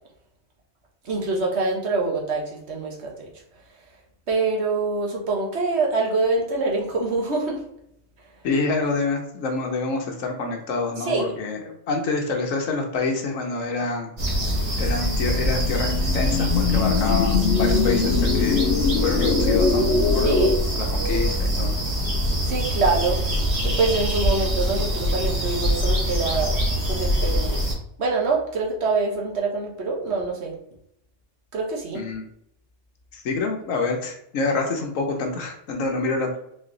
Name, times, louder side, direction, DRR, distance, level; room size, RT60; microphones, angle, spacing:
voice 1, 1.0-3.3 4.3-7.6 11.1-11.3 20.2-20.6 22.4-23.2 23.6-26.6 26.9-27.6 28.0-30.6 31.5-32.0, right 3 dB, 60° right, -1 dB, 1.3 m, -25 dB
voice 2, 8.4-14.1 14.8-18.7 19.0-19.9 20.1-20.4 20.7-21.8 31.9-32.2 33.1-36.4, left 3 dB, 85° left, 2 dB, 1.2 m, -27 dB
sound 1, 14.2-27.7, equal, 30° right, 1.3 m, -24 dB
sound 2, 15.0-20.6, left 5 dB, 70° left, 0.8 m, -23 dB
4.0 x 3.1 x 3.8 m, 0.73 s
omnidirectional pair, 1.3 m